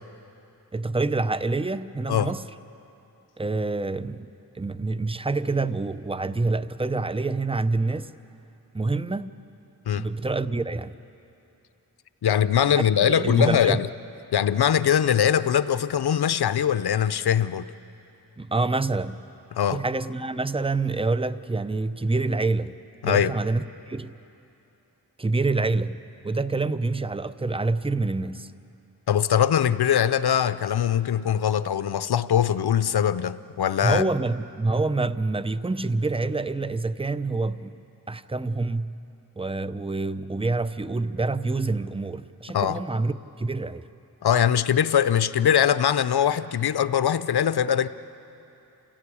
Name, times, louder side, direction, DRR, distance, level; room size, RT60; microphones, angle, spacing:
voice 1, 0.7-2.5 3.4-8.1 8.7-9.4 9.9-11.0 12.7-13.8 18.4-19.3 19.7-24.1 25.2-28.5 33.8-37.8 38.1-39.0 39.4-43.9, right 3 dB, 15° right, 13 dB, 0.6 m, -27 dB
voice 2, 12.2-13.9 14.3-17.7 19.5-19.8 23.0-23.3 29.1-34.0 42.5-42.8 44.2-47.9, left 9 dB, 80° left, 14 dB, 0.6 m, -22 dB
28.0 x 16.5 x 8.6 m, 2.9 s
wide cardioid pair, 60°, 38 cm